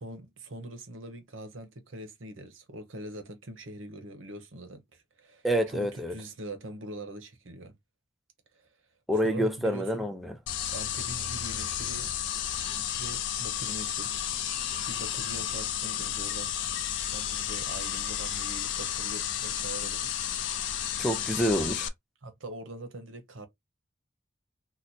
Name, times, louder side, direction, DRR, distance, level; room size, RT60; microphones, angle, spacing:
voice 1, 0.0-7.8 8.5-8.7 9.2-10.0 10.7-12.1 12.8-14.2 14.9-16.5 17.1-20.2 22.2-23.5, right 1 dB, 80° right, 0.9 m, -42 dB
voice 2, 5.4-6.1 9.1-10.3 21.0-21.9, equal, ahead, 0.4 m, -27 dB
sound 1, 10.5-21.9, left 10 dB, 65° left, 0.5 m, -32 dB
2.9 x 2.1 x 4.0 m
head